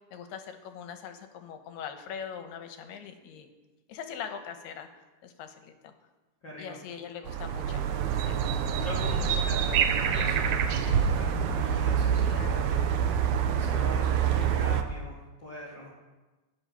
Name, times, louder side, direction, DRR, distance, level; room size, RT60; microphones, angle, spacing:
voice 1, 0.1-3.5 3.9-4.9 5.2-5.9 6.6-7.9 8.2-8.4 12.3-12.6, left 7 dB, 80° left, 7 dB, 3.1 m, -41 dB
voice 2, 6.4-6.8 8.8-15.2 15.4-15.9, left 1 dB, 35° left, -5 dB, 2.4 m, -42 dB
sound 1, 7.3-14.8, right 8 dB, 90° right, 1.6 m, -26 dB
21.5 x 8.0 x 5.7 m, 1.2 s
omnidirectional pair, 4.7 m